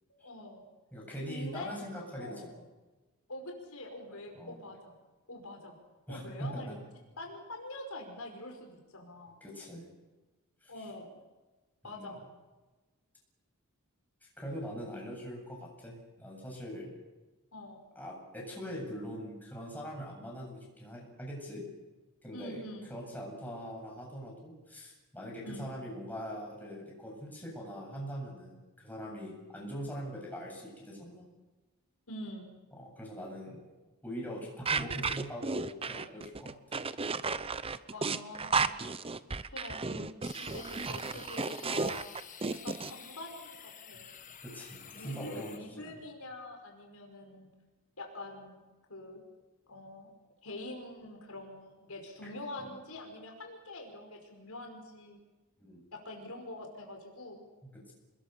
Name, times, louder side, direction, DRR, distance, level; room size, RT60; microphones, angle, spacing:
voice 1, 0.1-0.7 1.3-1.7 2.2-2.4 3.3-4.9 5.3-5.8 6.1-6.7 7.2-9.4 10.7-11.2 11.8-12.2 17.5-17.8 22.3-22.9 25.4-25.7 32.1-32.5 37.9-38.7 39.5-40.1 40.4-42.1 42.5-44.1 44.9-47.5 48.0-48.6 48.9-49.2 49.7-50.1 50.4-55.2 55.9-57.5, left 1 dB, 75° left, 2 dB, 5.3 m, -45 dB
voice 2, 0.9-2.5 4.3-4.6 6.1-6.8 9.4-10.0 10.6-10.7 11.8-12.2 14.2-16.9 17.9-21.6 22.2-22.6 22.9-31.3 32.7-33.6 34.0-36.9 43.9-44.0 44.4-45.9 52.2-52.3 52.6-52.7 55.6-55.9 57.6-57.9, equal, 10° left, -2 dB, 7.9 m, -42 dB
sound 1, 34.7-42.9, right 4 dB, 25° right, 0.7 m, -33 dB
sound 2, 40.2-45.6, left 8 dB, 35° left, 1.6 m, -50 dB
27.5 x 21.0 x 6.9 m, 1.2 s
head